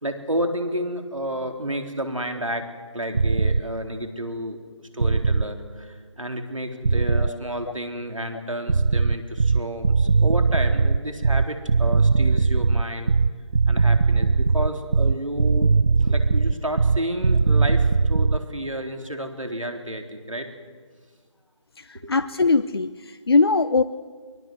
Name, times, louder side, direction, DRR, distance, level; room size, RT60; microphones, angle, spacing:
voice 1, 0.0-2.6 2.9-13.1 13.7-20.5 21.9-22.1, right 1 dB, 85° right, 5 dB, 3.8 m, -31 dB
sound 1, 3.1-3.6 5.0-5.5 6.8-7.3 8.7-18.4, right 4 dB, 60° right, 0.7 m, -19 dB
voice 2, 21.8-23.8, left 3 dB, 50° left, 12 dB, 0.7 m, -21 dB
24.5 x 20.0 x 7.9 m, 1.5 s
figure-of-eight pair, 160°, 16 cm